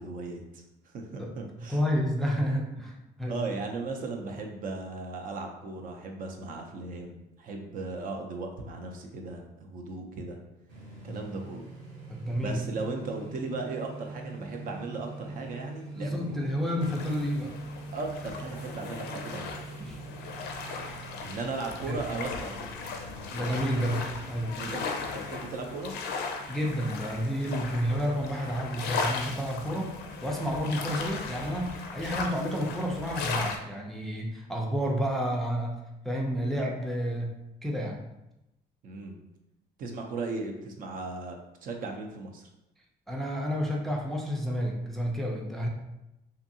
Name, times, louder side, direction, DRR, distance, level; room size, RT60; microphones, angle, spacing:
voice 1, 0.0-1.8 3.3-10.4 11.0-11.7 12.4-16.2 17.9-19.7 21.2-22.8 24.6-25.9 38.8-39.2 39.8-41.4 41.6-42.5, right 3 dB, 55° right, 2 dB, 0.5 m, -37 dB
voice 2, 1.6-3.4 11.0-11.2 12.1-12.6 15.9-17.5 19.8-20.0 21.9-22.0 23.3-24.0 24.3-24.5 26.5-30.0 30.2-35.8 36.0-37.3 37.6-38.0 43.1-45.7, equal, ahead, -1 dB, 0.4 m, -30 dB
sound 1, 10.7-24.9, right 3 dB, 75° right, 1.0 m, -44 dB
sound 2, 16.8-33.6, left 4 dB, 75° left, 0.4 m, -37 dB
2.7 x 2.5 x 2.6 m, 0.90 s
cardioid pair, 110°, 17 cm